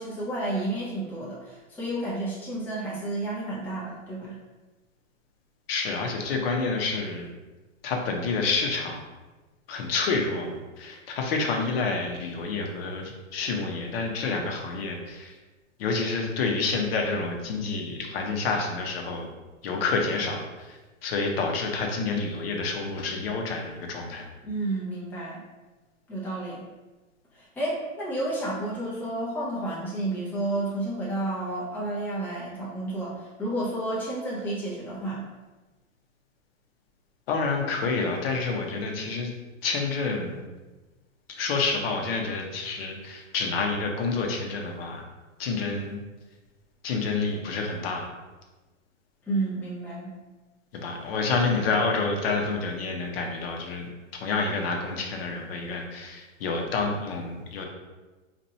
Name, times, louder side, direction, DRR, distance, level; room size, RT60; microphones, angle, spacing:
voice 1, 0.0-4.4 24.4-25.4 26.1-26.7 27.3-35.3 49.3-50.1, right 2 dB, 5° left, -7 dB, 0.5 m, -31 dB
voice 2, 5.7-7.3 7.8-9.0 9.7-15.4 15.8-19.3 19.6-24.3 37.3-39.3 39.6-40.4 41.3-45.0 45.4-46.0 46.8-48.1 50.7-57.7, left 4 dB, 50° left, 2 dB, 0.8 m, -28 dB
2.8 x 2.5 x 4.2 m, 1.2 s
hypercardioid pair, 145°, 38 cm